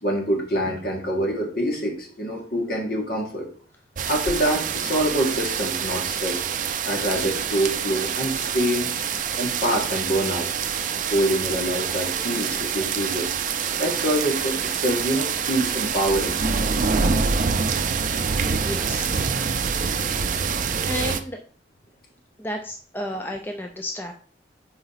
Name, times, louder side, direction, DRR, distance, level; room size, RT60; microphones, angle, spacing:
voice 1, 0.0-3.5 4.1-6.5 6.8-8.9 9.4-10.5 11.1-13.3 13.8-16.4, right 1 dB, 55° left, 0 dB, 1.8 m, -25 dB
sound 1, 3.9-21.2, right 6 dB, 45° right, 0.5 m, -26 dB
voice 2, 11.9-12.2 12.8-12.9 18.4-19.1 20.9-21.4 22.4-24.1, left 1 dB, 10° left, 3 dB, 0.4 m, -32 dB
4.9 x 3.8 x 5.7 m, 0.44 s
head